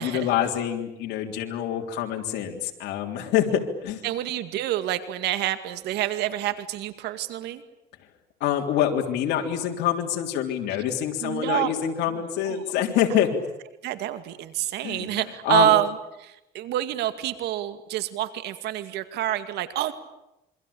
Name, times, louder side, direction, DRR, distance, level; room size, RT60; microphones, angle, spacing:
voice 1, 0.0-4.0 8.4-13.4 14.8-15.1 15.5-15.7, left 10 dB, 85° left, 2 dB, 3.6 m, -26 dB
voice 2, 4.0-7.6 10.7-10.8 11.2-11.7 12.0-13.2 13.8-19.9, right 13 dB, 85° right, 11 dB, 2.3 m, -27 dB
27.0 x 24.5 x 8.7 m, 0.90 s
cardioid pair, 110°, 17 cm